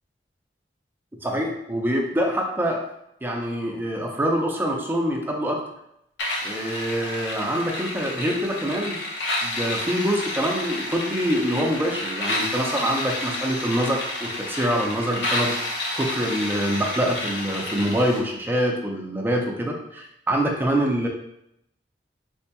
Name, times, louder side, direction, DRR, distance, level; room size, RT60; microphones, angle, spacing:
voice 1, 1.2-2.8 3.2-5.6 6.4-9.0 9.4-21.1, equal, 10° right, 1 dB, 0.5 m, -25 dB
sound 1, 6.2-18.2, left 1 dB, 85° left, 0.7 m, -30 dB
4.2 x 2.8 x 2.2 m, 0.79 s
head